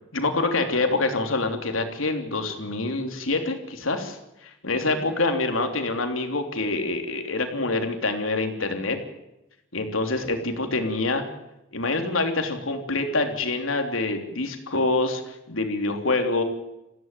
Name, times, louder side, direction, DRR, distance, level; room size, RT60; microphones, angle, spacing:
voice 1, 0.1-4.2 4.4-9.0 9.7-11.2 11.7-16.4, left 2 dB, 90° left, 5 dB, 3.3 m, -26 dB
21.5 x 15.5 x 9.3 m, 0.91 s
head